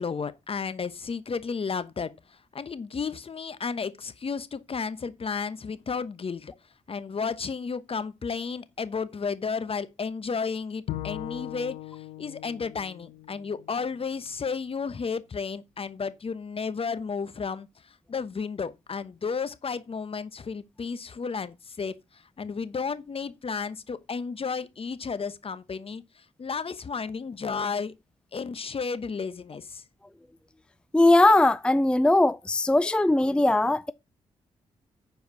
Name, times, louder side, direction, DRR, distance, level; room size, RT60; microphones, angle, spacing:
voice 1, 0.0-6.5 6.9-27.9 28.3-29.8, left 5 dB, 45° left, 1.0 m, -33 dB
Bowed string instrument, 10.9-14.1, left 15 dB, 90° left, 0.7 m, -39 dB
voice 2, 30.9-33.9, left 2 dB, 5° left, 0.5 m, -20 dB
9.5 x 4.7 x 5.9 m
supercardioid pair, 45°, 13 cm